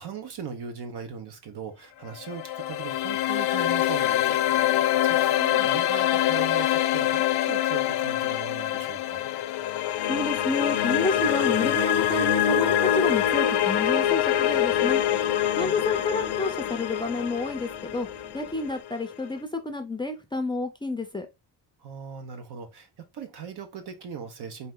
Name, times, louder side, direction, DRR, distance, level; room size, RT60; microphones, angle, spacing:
voice 1, 0.0-9.3 15.6-15.8 21.8-24.7, right 6 dB, 70° right, 1.2 m, -39 dB
sound 1, 2.1-19.2, left 12 dB, 75° left, 0.6 m, -25 dB
sound 2, 9.8-18.8, right 3 dB, 20° right, 0.7 m, -46 dB
voice 2, 10.1-15.0 15.5-18.1 18.3-21.3, left 3 dB, 10° left, 0.4 m, -30 dB
4.1 x 2.7 x 3.7 m
cardioid pair, 155°, 40 cm